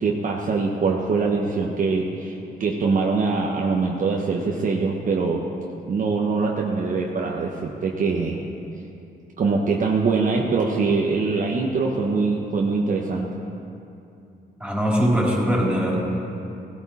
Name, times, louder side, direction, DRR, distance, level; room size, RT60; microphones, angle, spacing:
voice 1, 0.0-5.4 5.9-8.5 9.4-13.4, right 4 dB, 50° right, -1 dB, 1.1 m, -23 dB
voice 2, 14.6-16.0, equal, 5° right, -4 dB, 3.7 m, -21 dB
17.0 x 12.5 x 4.2 m, 2.7 s
cardioid pair, 120°, 18 cm